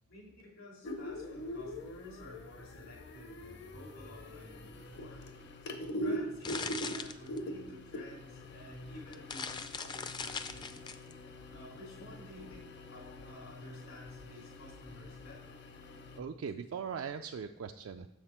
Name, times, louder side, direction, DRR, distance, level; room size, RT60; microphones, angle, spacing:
voice 1, 0.1-5.2 5.8-11.0 11.5-15.6, left 1 dB, 80° left, -2 dB, 2.7 m, -52 dB
sound 1, 0.8-16.2, equal, 55° left, 0.7 m, -43 dB
sound 2, 6.0-7.8 8.6-8.7 9.0-11.1, left 5 dB, 20° left, 0.4 m, -40 dB
voice 2, 16.2-18.1, right 6 dB, 70° right, 6 dB, 0.3 m, -40 dB
7.2 x 5.9 x 4.4 m, 0.93 s
head